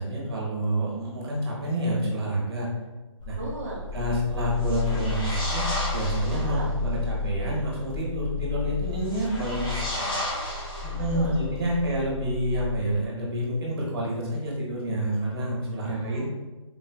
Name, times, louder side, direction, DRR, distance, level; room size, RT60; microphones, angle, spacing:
voice 1, 0.0-2.7 3.2-3.4 3.9-10.0 10.8-16.2, right 1 dB, 50° right, -3 dB, 0.9 m, -28 dB
sound 1, 3.2-13.1, left 4 dB, 75° left, 0.4 m, -32 dB
voice 2, 3.4-3.9 6.3-6.7 9.4-11.4 15.7-16.2, right 1 dB, 25° right, -5 dB, 0.5 m, -39 dB
sound 2, 4.6-6.6 9.0-11.3, left 1 dB, 45° left, 0.8 m, -33 dB
3.7 x 2.2 x 2.2 m, 1.2 s
hypercardioid pair, 170°, 17 cm